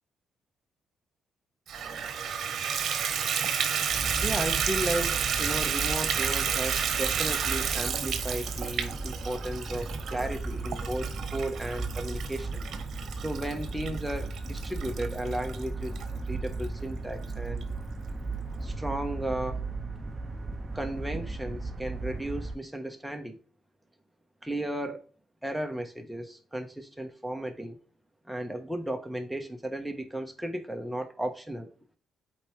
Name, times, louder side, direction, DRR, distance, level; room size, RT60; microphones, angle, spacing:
Water tap faucet / Bathtub (filling or washing), 1.7-16.1 16.6-16.7 17.2-17.3 17.6-17.7, right 7 dB, 60° right, 1.1 m, -31 dB
sound 1, 3.9-22.5, right 3 dB, 25° right, 0.8 m, -36 dB
voice 1, 4.2-12.6 13.1-16.0 16.3-17.7 18.6-19.6 20.7-23.4 24.4-25.0 25.4-27.8 28.3-31.7, right 1 dB, 5° right, 1.3 m, -34 dB
7.7 x 4.6 x 3.3 m
cardioid pair, 90°, 0 cm